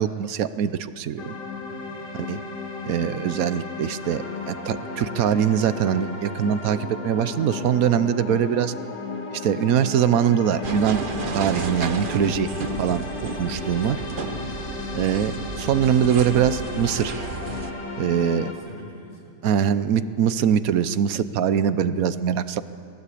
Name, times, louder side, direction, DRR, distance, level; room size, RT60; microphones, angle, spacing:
voice 1, 0.0-1.3 2.2-2.4 2.8-8.7 9.3-11.0 11.3-12.5 12.8-13.1 13.4-14.0 14.9-17.1 18.0-18.5 19.4-22.6, right 9 dB, 65° right, 13 dB, 1.1 m, -22 dB
sound 1, 1.2-18.5, left 3 dB, 75° left, 2.6 m, -34 dB
voice 2, 1.5-1.9 7.5-7.9 13.0-14.4 18.5-19.4, left 1 dB, 20° right, -4 dB, 5.4 m, -45 dB
sound 2, 10.6-17.7, right 4 dB, 40° right, 0.9 m, -33 dB
19.5 x 17.0 x 8.5 m, 2.4 s
omnidirectional pair, 1.8 m